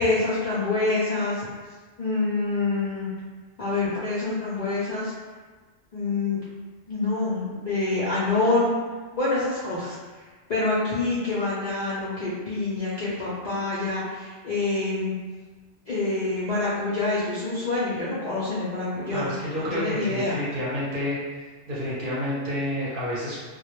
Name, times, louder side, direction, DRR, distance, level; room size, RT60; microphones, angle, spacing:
voice 1, 0.0-1.4 2.0-3.1 3.6-5.1 5.9-6.4 6.9-8.7 9.1-10.0 10.5-15.1 15.9-20.4, left 3 dB, 60° left, -9 dB, 0.5 m, -26 dB
voice 2, 18.9-21.2 21.7-23.4, left 1 dB, 55° right, -8 dB, 0.7 m, -29 dB
2.1 x 2.0 x 2.9 m, 1.4 s
omnidirectional pair, 1.2 m